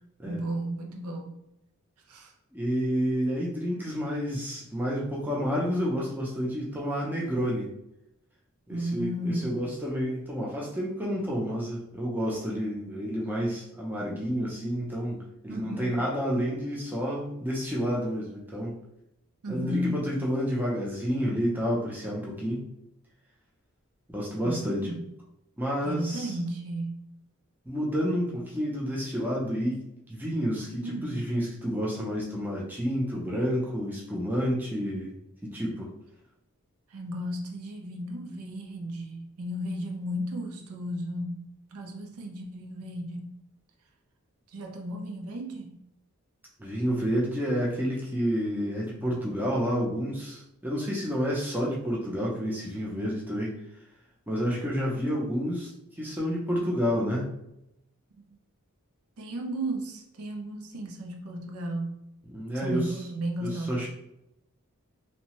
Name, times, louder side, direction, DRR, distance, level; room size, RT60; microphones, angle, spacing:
voice 1, 0.3-1.4 2.1-2.3 8.7-9.7 15.5-16.0 19.4-20.1 24.4-25.0 25.8-27.1 30.8-31.2 36.9-43.3 44.5-45.8 59.2-62.0 62.5-63.9, right 1 dB, 70° right, 3 dB, 0.4 m, -34 dB
voice 2, 2.5-7.7 8.7-18.7 19.5-22.6 24.1-24.9 25.6-26.3 27.7-29.8 30.1-35.1 35.4-35.9 46.6-53.6 54.3-55.7 56.0-57.3 62.3-62.9 63.4-63.9, equal, 10° right, -4 dB, 0.5 m, -29 dB
2.8 x 2.1 x 3.0 m, 0.83 s
head